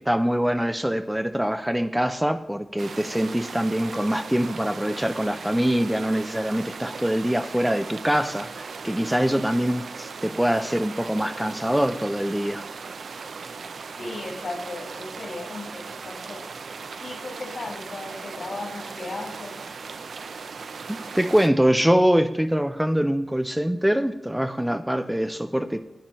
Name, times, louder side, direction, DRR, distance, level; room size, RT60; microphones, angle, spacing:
voice 1, 0.0-12.7 20.9-25.8, equal, 5° right, 8 dB, 0.4 m, -24 dB
sound 1, 2.8-21.5, right 5 dB, 80° right, 0.5 m, -38 dB
voice 2, 14.0-16.4 17.0-19.6, left 2 dB, 60° left, 0 dB, 2.3 m, -36 dB
11.5 x 8.8 x 3.0 m, 0.90 s
wide cardioid pair, 110°, 0 cm